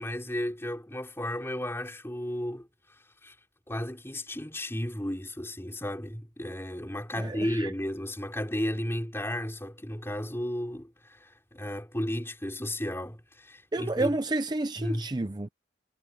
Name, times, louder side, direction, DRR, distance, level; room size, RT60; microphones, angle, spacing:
voice 1, 0.0-2.7 3.2-3.3 3.7-14.2 14.8-15.1, left 1 dB, 15° left, 4.1 m, -33 dB
voice 2, 7.2-7.7 13.7-15.5, right 2 dB, 25° right, 0.6 m, -30 dB
head